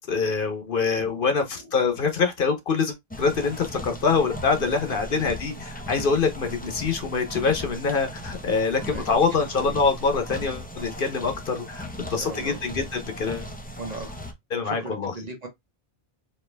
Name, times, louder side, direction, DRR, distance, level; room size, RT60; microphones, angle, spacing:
voice 1, 0.1-13.5 14.5-15.1, left 5 dB, 60° left, 0.9 m, -25 dB
sound 1, 3.1-14.3, equal, 10° left, 0.5 m, -38 dB
voice 2, 4.5-5.1 8.8-9.2 9.5-9.7 11.9-12.6 13.4-13.5 13.8-14.1 14.6-15.5, right 2 dB, 40° right, 1.2 m, -39 dB
4.4 x 2.9 x 3.3 m
omnidirectional pair, 1.0 m